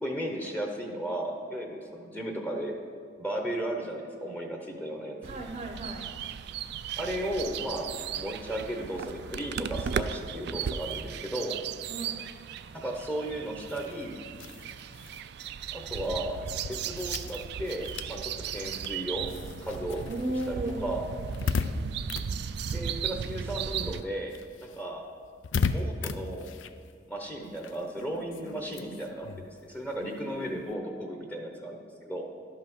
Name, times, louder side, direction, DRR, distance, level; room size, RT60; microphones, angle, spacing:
voice 1, 0.0-2.8 3.2-5.2 7.0-7.9 8.2-11.6 12.7-14.2 15.7-16.4 16.7-19.3 19.6-20.0 20.5-21.0 22.7-24.3 24.6-25.1 25.7-26.5 27.1-32.3, right 1 dB, 10° left, 2 dB, 0.8 m, -35 dB
voice 2, 5.2-6.1 11.9-12.2 20.0-21.1 30.1-30.7, right 1 dB, 35° right, 3 dB, 0.7 m, -35 dB
sound 1, 5.2-24.0, right 7 dB, 65° right, 0.4 m, -36 dB
sound 2, 13.6-23.5 23.8-30.7, left 4 dB, 85° left, 0.5 m, -37 dB
11.5 x 5.6 x 6.1 m, 2.2 s
head